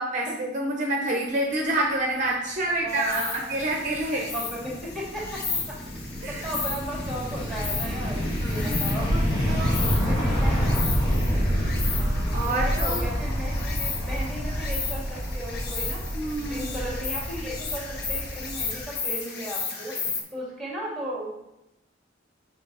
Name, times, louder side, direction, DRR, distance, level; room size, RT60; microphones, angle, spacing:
voice 1, 0.0-4.3 6.2-6.4 8.4-9.0 9.5-9.8 11.2-11.8 12.3-13.1 16.1-16.7, right 1 dB, 40° right, 0 dB, 0.7 m, -28 dB
voice 2, 2.6-3.4 4.3-5.4 6.3-9.2 9.8-10.8 11.9-16.0 16.4-20.0 20.3-21.3, equal, ahead, -5 dB, 2.3 m, -36 dB
Insect, 2.9-20.2, left 5 dB, 55° left, 1.0 m, -35 dB
sound 1, 3.3-18.8, equal, 25° left, 1.5 m, -28 dB
6.8 x 5.4 x 4.0 m, 0.90 s
head